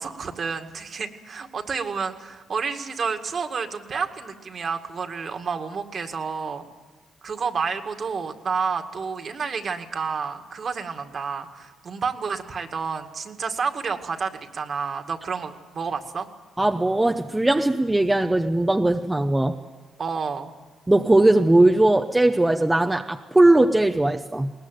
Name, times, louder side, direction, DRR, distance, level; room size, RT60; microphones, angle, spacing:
voice 1, 0.0-6.6 7.2-16.3 20.0-20.5, right 5 dB, 45° right, 5 dB, 2.2 m, -30 dB
voice 2, 16.6-19.6 20.9-24.5, right 2 dB, 10° right, 4 dB, 0.9 m, -19 dB
21.5 x 19.5 x 9.3 m, 1.2 s
cardioid pair, 90°, 0 cm